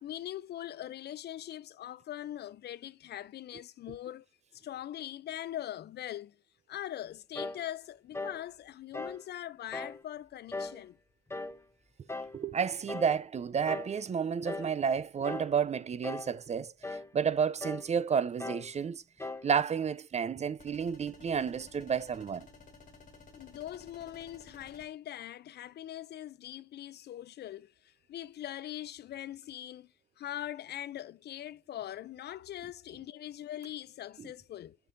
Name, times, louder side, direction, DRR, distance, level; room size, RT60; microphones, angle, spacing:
voice 1, 0.0-4.2 4.5-6.4 6.7-11.0 23.3-34.8, left 12 dB, 55° left, 0.4 m, -42 dB
sound 1, 7.3-7.6 8.1-8.4 8.9-9.2 9.7-10.0 10.5-10.8 11.3-11.6 12.1-12.4 12.9-13.2 13.7-14.0 14.5-14.8 15.2-15.6 16.0-16.4 16.8-17.1 17.6-17.9 18.4-18.7 19.2-19.5, left 3 dB, 10° left, 0.8 m, -39 dB
voice 2, 12.3-19.0 19.4-22.5, right 7 dB, 35° right, 0.5 m, -31 dB
sound 2, 20.6-24.9, left 4 dB, 40° left, 2.0 m, -55 dB
6.9 x 5.9 x 2.5 m
cardioid pair, 90°, 20 cm